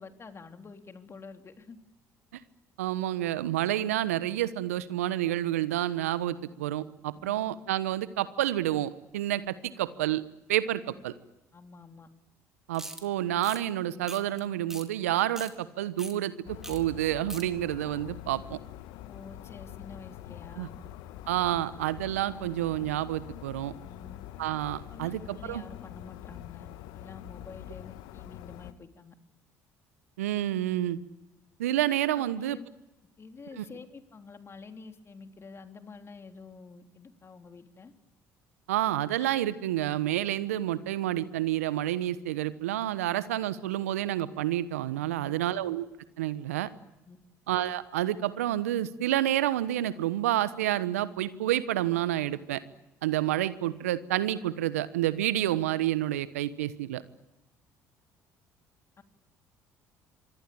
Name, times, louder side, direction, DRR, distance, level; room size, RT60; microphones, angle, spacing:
voice 1, 0.0-1.8 7.1-7.4 10.9-11.0 11.5-12.1 19.0-20.8 23.8-24.2 24.9-26.7 26.9-29.2 32.2-32.7 33.2-37.9 45.0-45.4 47.0-47.2 59.0-59.1, left 4 dB, 35° left, 6 dB, 3.4 m, -48 dB
voice 2, 2.8-10.2 10.5-11.1 12.7-16.3 16.7-18.6 20.6-20.7 21.3-23.7 24.4-25.6 30.2-31.0 31.6-32.6 33.6-33.7 38.7-45.9 46.2-46.7 47.5-52.6 53.0-57.0, right 13 dB, 85° right, 16 dB, 1.1 m, -29 dB
sound 1, 12.7-13.0 13.4-13.6 14.1-14.4 14.7-14.8 15.2-15.5 16.0-16.1 16.6-16.8 17.0-17.4, right 1 dB, 5° right, 4.2 m, -41 dB
sound 2, 16.4-28.7, left 13 dB, 70° left, 1.3 m, -45 dB
26.0 x 24.5 x 8.7 m, 0.96 s
hypercardioid pair, 60°, 8 cm